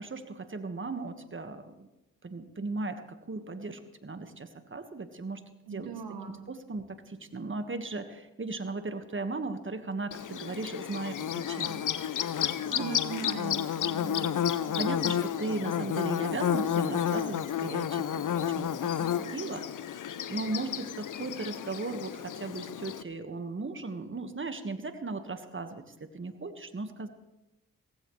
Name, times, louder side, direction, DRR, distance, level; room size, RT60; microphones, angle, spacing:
voice 1, 0.0-1.9 2.2-5.4 5.7-5.9 6.5-11.8 12.1-12.3 12.6-12.8 14.6-19.9 20.3-25.8 26.1-27.1, right 3 dB, 35° right, 8 dB, 1.6 m, -37 dB
voice 2, 5.7-6.4 12.7-14.4, right 6 dB, 85° right, 5 dB, 2.0 m, -39 dB
Bird / Buzz, 10.1-23.0, left 9 dB, 60° left, 0.7 m, -31 dB
17.0 x 15.5 x 3.3 m, 0.98 s
supercardioid pair, 45°, 35 cm